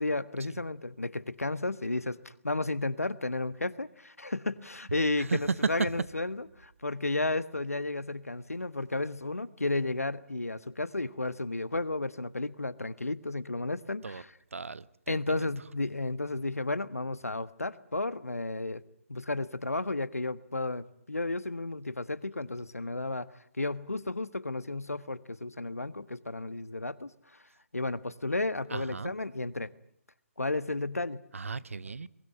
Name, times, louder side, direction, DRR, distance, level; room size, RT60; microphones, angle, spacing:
voice 1, 0.0-14.4 15.1-18.8 19.1-23.3 23.6-27.1 27.7-29.7 30.4-31.2, left 2 dB, 80° left, 1.3 m, -33 dB
voice 2, 14.5-15.2 28.7-29.1 31.3-32.1, right 4 dB, 65° right, 1.0 m, -37 dB
22.5 x 20.5 x 10.0 m
figure-of-eight pair, 145°, 8 cm